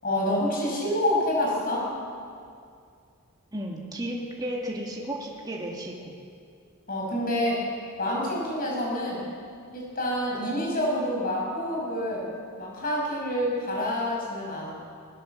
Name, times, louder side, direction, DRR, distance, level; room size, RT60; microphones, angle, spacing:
voice 1, 0.0-1.9 6.9-7.7 8.0-9.2 9.7-12.3 12.6-14.7, left 1 dB, 40° left, -2 dB, 6.9 m, -27 dB
voice 2, 3.5-6.0, right 1 dB, 20° right, -2 dB, 2.3 m, -33 dB
20.0 x 20.0 x 7.5 m, 2.3 s
head